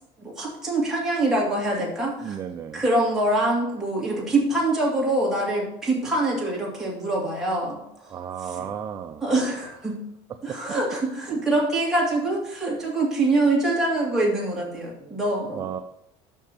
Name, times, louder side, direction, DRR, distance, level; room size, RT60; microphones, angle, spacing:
voice 1, 0.2-2.4 2.7-7.8 8.6-8.7 9.2-10.0 10.4-15.7, right 2 dB, 5° right, -6 dB, 2.2 m, -24 dB
voice 2, 2.2-2.8 8.1-9.2 10.5-10.6 15.0-15.2 15.5-15.8, right 8 dB, 20° right, 6 dB, 0.3 m, -34 dB
5.9 x 5.4 x 6.5 m, 0.81 s
cardioid pair, 170°, 14 cm